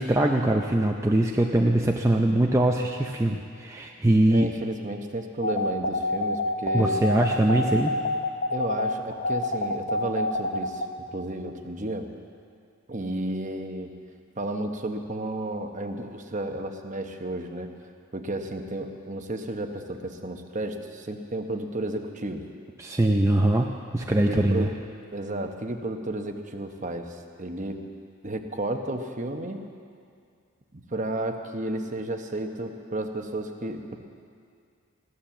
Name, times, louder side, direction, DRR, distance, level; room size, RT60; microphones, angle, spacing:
voice 1, 0.0-4.5 6.7-7.9 22.8-24.7, right 1 dB, 15° right, 1 dB, 0.5 m, -22 dB
voice 2, 4.3-7.0 7.6-7.7 8.5-10.8 11.1-12.1 12.9-13.9 14.4-17.7 18.1-22.4 24.3-24.7 25.1-27.8 28.2-29.6 30.7-34.0, right 1 dB, 35° right, 5 dB, 0.9 m, -32 dB
sound 1, 5.4-10.9, left 2 dB, 40° left, 0.7 m, -27 dB
15.5 x 11.5 x 7.2 m, 2.3 s
head